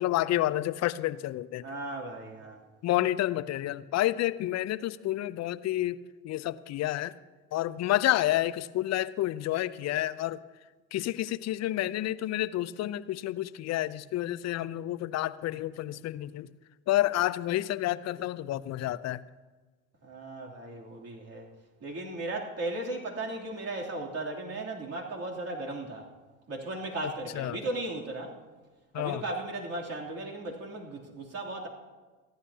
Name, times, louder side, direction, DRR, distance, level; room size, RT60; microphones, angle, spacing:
voice 1, 0.0-1.6 2.8-7.1 7.5-10.4 10.9-16.5 16.9-19.2 27.0-27.6 28.9-29.2, left 14 dB, 40° left, 16 dB, 0.6 m, -29 dB
voice 2, 1.6-2.6 20.0-21.5 21.8-26.1 26.5-28.4 28.9-31.7, right 2 dB, 35° right, -2 dB, 3.2 m, -36 dB
29.0 x 11.5 x 2.9 m, 1.3 s
hypercardioid pair, 65°, 42 cm